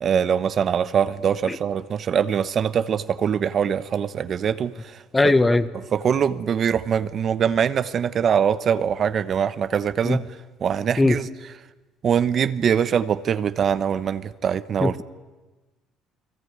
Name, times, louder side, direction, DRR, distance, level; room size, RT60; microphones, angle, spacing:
voice 1, 0.0-5.0 5.9-10.2 10.6-11.3 12.0-15.0, right 8 dB, 45° right, 0.9 m, -23 dB
voice 2, 5.1-5.7 10.0-10.2 11.0-11.2 14.8-15.0, left 2 dB, 15° left, 1.2 m, -19 dB
29.5 x 20.5 x 9.5 m
cardioid pair, 110°, 0 cm